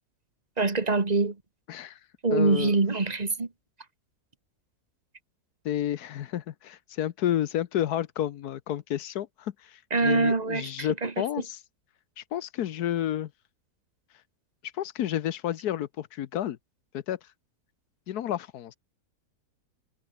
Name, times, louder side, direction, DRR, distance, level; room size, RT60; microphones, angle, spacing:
voice 1, 0.6-1.4 2.2-3.5 9.9-11.2, right 3 dB, 25° right, 1.9 m, -24 dB
voice 2, 1.7-2.0 2.3-2.8 5.6-11.6 12.2-13.3 14.7-16.6 16.9-17.2 18.1-18.8, left 11 dB, 75° left, 1.3 m, -31 dB
omnidirectional pair, 1.7 m